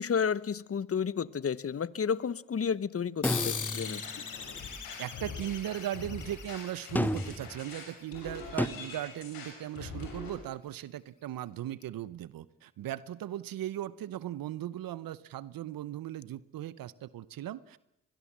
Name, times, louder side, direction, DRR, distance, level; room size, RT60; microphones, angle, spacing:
voice 1, 0.0-4.0, left 7 dB, 40° left, 20 dB, 1.0 m, -31 dB
sound 1, 3.2-8.2, left 6 dB, 60° left, 3.2 m, -40 dB
sound 2, 3.2-4.2 7.0-7.6 8.6-8.7, left 1 dB, 5° left, 1.2 m, -31 dB
sound 3, 3.8-10.3, left 4 dB, 85° left, 6.4 m, -44 dB
voice 2, 5.0-17.8, right 12 dB, 80° right, 19 dB, 0.9 m, -38 dB
24.0 x 21.0 x 7.4 m, 0.81 s
supercardioid pair, 45°, 35 cm